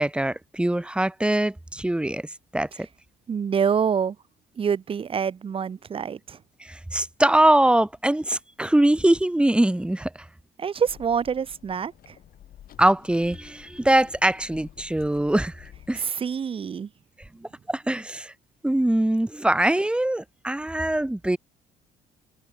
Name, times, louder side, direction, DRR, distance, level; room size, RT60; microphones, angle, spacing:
voice 1, 0.0-2.3 2.5-2.9 6.6-10.1 12.8-16.0 17.4-18.3 18.6-21.4, right 1 dB, 5° right, 2.0 m, -22 dB
voice 2, 3.3-4.2 4.6-6.4 10.6-12.2 15.9-16.9, right 7 dB, 30° right, 0.9 m, -26 dB
sound 1, 10.9-16.0, left 11 dB, 60° left, 6.0 m, -49 dB
cardioid pair, 110°, 17 cm